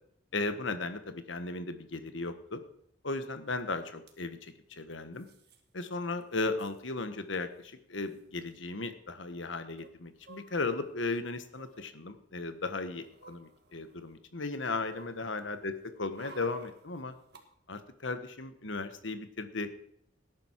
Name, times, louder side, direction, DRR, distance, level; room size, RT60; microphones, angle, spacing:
voice 1, 0.3-2.6 3.0-5.3 5.7-17.1 17.7-19.7, left 3 dB, 70° left, 9 dB, 1.4 m, -36 dB
sound 1, 3.6-3.7 3.9-4.2 5.1-5.6 5.9-6.0 6.2-6.8 7.7-7.8 8.0-8.2 9.8-10.9 11.5-11.9 12.5-14.1 14.5-17.4 17.8-17.9, right 3 dB, 55° right, 1.9 m, -55 dB
18.0 x 10.5 x 4.7 m, 0.68 s
head